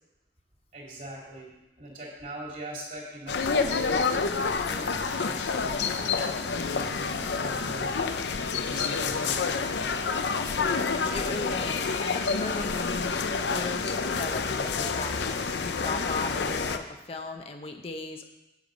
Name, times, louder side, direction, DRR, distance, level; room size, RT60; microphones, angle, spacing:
voice 1, 0.7-1.5 1.8-7.9 8.5-10.2, right 1 dB, 45° right, -3 dB, 2.8 m, -42 dB
sound 1, 3.3-16.8, left 4 dB, 80° left, 0.6 m, -28 dB
voice 2, 11.1-13.1 13.5-18.3, left 3 dB, 35° left, 5 dB, 0.6 m, -37 dB
8.5 x 8.1 x 5.2 m, 0.97 s
head